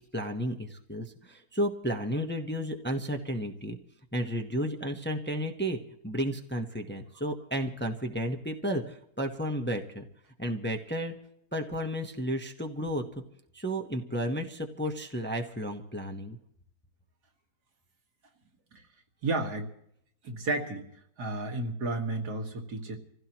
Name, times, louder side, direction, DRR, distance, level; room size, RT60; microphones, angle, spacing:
voice 1, 0.1-3.8 4.1-10.0 10.4-11.1 11.5-13.2 13.5-16.4, equal, 10° left, 3 dB, 0.9 m, -32 dB
voice 2, 19.2-19.7 20.2-20.9 21.2-23.0, right 2 dB, 80° right, 2 dB, 2.4 m, -32 dB
27.0 x 16.0 x 3.0 m, 0.70 s
omnidirectional pair, 1.7 m